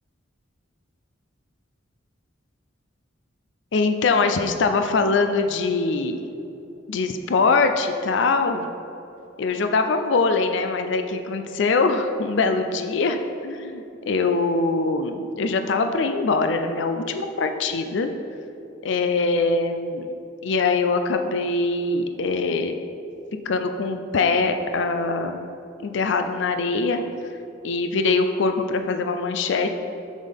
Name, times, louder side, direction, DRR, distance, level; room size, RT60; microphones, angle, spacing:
voice 1, 3.7-6.2 6.9-8.7 9.4-18.1 18.8-20.1 20.4-22.8 23.4-25.4 25.8-27.0 27.6-29.7, left 3 dB, 60° left, 7 dB, 0.4 m, -23 dB
7.5 x 7.3 x 3.5 m, 2.8 s
head